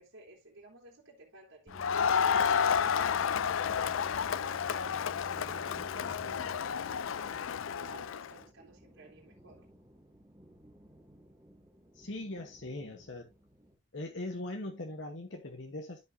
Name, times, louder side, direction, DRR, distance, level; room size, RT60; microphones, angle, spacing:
voice 1, 0.0-9.7, right 2 dB, 80° right, 3.3 m, -53 dB
Crowd, 1.7-8.3, left 7 dB, 75° left, 0.4 m, -31 dB
sound 1, 1.7-6.6, right 2 dB, 5° left, 1.9 m, -51 dB
sound 2, 4.2-13.8, equal, 15° right, 2.4 m, -59 dB
voice 2, 11.9-13.3 13.9-16.0, left 2 dB, 60° left, 1.2 m, -40 dB
13.5 x 5.4 x 2.6 m
head